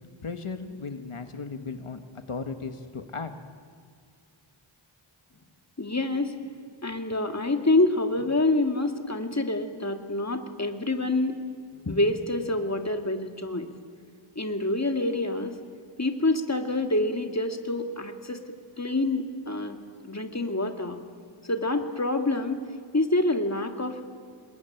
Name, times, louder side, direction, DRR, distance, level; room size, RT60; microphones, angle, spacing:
voice 1, 0.2-2.0 2.3-3.3, left 4 dB, 85° left, 7 dB, 1.5 m, -36 dB
voice 2, 5.8-6.3 6.8-11.4 11.9-13.7 14.4-15.5 16.0-18.4 18.8-19.8 20.0-21.0 21.5-22.6 22.9-24.0, left 2 dB, 30° left, 5 dB, 2.2 m, -26 dB
27.0 x 21.0 x 9.2 m, 2.1 s
wide cardioid pair, 50°, 50 cm